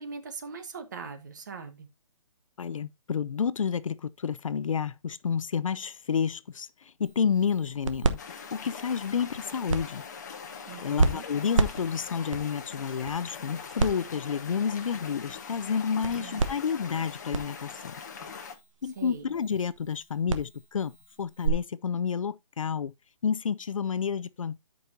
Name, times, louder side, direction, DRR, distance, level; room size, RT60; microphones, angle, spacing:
voice 1, 0.0-1.9 10.7-11.3 16.0-16.5 18.9-19.3, right 5 dB, 30° right, 1.3 m, -41 dB
voice 2, 2.6-6.7 7.0-8.2 8.5-10.0 10.8-18.0 18.8-22.9 23.2-24.7, left 7 dB, 65° left, 0.6 m, -30 dB
sound 1, 7.0-21.5, right 3 dB, 60° right, 1.1 m, -33 dB
sound 2, 8.2-18.5, left 6 dB, 30° left, 1.2 m, -42 dB
13.0 x 5.3 x 2.7 m
hypercardioid pair, 175°, 18 cm